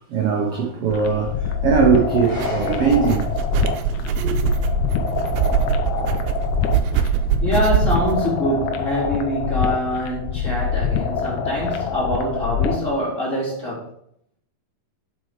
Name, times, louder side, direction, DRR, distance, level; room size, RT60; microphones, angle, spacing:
voice 1, 0.1-3.3 4.2-4.4, right 6 dB, 70° right, 1.4 m, -20 dB
sound 1, 0.9-12.9, left 7 dB, 80° left, 1.7 m, -25 dB
sound 2, 2.1-8.2, right 8 dB, 90° right, 2.6 m, -23 dB
voice 2, 7.4-13.9, equal, 20° left, 3.3 m, -24 dB
7.7 x 6.2 x 5.0 m
omnidirectional pair, 4.5 m